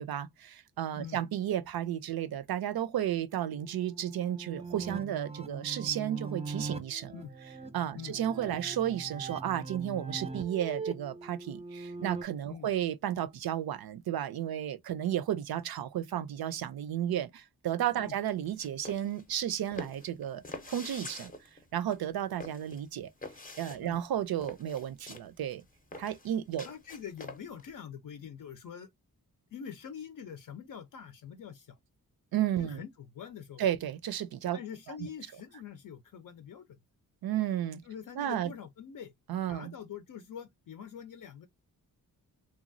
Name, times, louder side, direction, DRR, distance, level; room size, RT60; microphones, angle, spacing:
voice 1, 0.0-7.1 7.7-21.3 21.7-23.1 23.6-25.6 26.0-26.7 32.3-32.8 33.6-34.6 37.2-37.8 38.2-38.5 39.3-39.7, right 11 dB, 75° right, 0.5 m, -33 dB
sound 1, 3.5-12.2, right 4 dB, 20° right, 0.4 m, -41 dB
sound 2, 18.4-27.7, left 2 dB, 20° left, 0.6 m, -46 dB
voice 2, 26.6-28.9 29.5-31.8 32.6-33.6 34.5-36.8 37.8-39.1 39.5-41.5, left 8 dB, 60° left, 0.5 m, -45 dB
3.0 x 2.3 x 2.5 m
cardioid pair, 80°, 37 cm